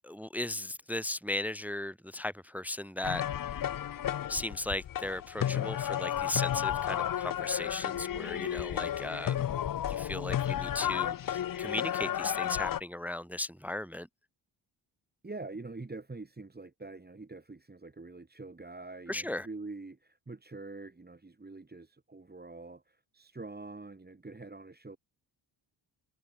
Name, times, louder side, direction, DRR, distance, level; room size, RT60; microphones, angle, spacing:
voice 1, 0.0-3.5 4.3-9.4 9.8-14.1 19.1-19.5, left 2 dB, 5° right, 0.5 m, -37 dB
sound 1, 3.0-12.8, left 10 dB, 45° left, 0.7 m, -32 dB
voice 2, 15.2-25.0, right 3 dB, 20° right, 3.0 m, -45 dB
cardioid pair, 80°, 45 cm